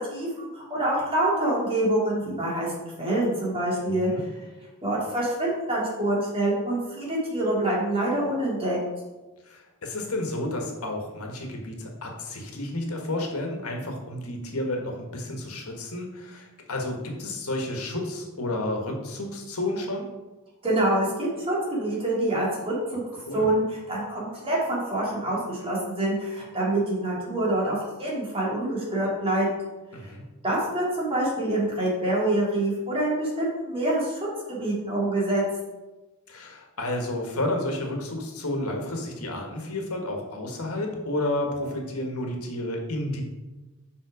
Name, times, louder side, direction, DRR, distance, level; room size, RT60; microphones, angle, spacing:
voice 1, 0.0-2.7 3.0-4.3 4.8-8.8 20.6-23.0 23.3-29.5 30.4-34.2 34.5-35.4, right 1 dB, 25° right, -5 dB, 2.8 m, -26 dB
voice 2, 3.9-4.2 9.4-20.1 23.1-23.5 29.9-30.2 36.3-43.2, left 1 dB, 75° left, 2 dB, 1.6 m, -31 dB
7.7 x 5.7 x 4.9 m, 1.1 s
head